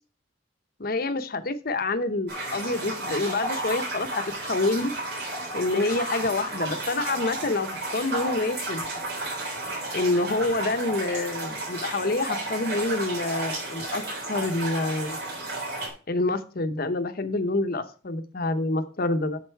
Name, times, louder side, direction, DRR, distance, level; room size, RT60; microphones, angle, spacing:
voice 1, 0.8-4.9 5.5-8.9 9.9-14.0 14.3-15.2 16.1-19.4, left 2 dB, 50° left, 10 dB, 0.9 m, -27 dB
sound 1, 2.3-15.9, right 2 dB, 60° right, 3.7 m, -33 dB
8.0 x 6.8 x 4.5 m, 0.37 s
head